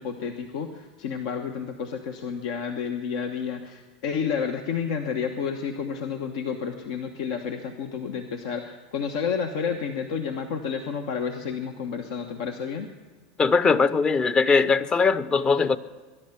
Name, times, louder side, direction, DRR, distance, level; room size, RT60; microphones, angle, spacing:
voice 1, 0.0-12.9, left 6 dB, 75° left, 5 dB, 1.1 m, -30 dB
voice 2, 13.4-15.8, left 4 dB, 25° left, 15 dB, 0.7 m, -20 dB
21.0 x 11.0 x 5.9 m, 1.4 s
supercardioid pair, 120°, 4 cm